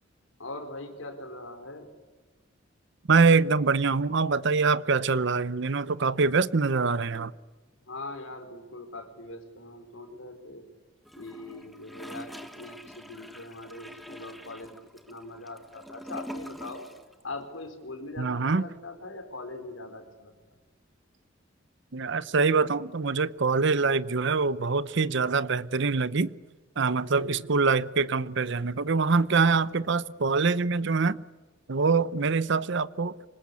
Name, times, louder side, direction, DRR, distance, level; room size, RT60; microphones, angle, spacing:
voice 1, 0.4-1.9 7.8-10.7 11.1-14.8 15.1-16.9 17.2-20.3 26.9-27.4, left 2 dB, 80° left, 4.3 m, -41 dB
voice 2, 3.1-7.3 18.2-18.6 21.9-26.3 26.8-31.2 31.7-33.2, right 4 dB, 65° right, 0.7 m, -24 dB
Gurgling / Toilet flush, 11.1-17.1 17.4-17.5, equal, ahead, 1.6 m, -44 dB
26.0 x 20.5 x 8.4 m
head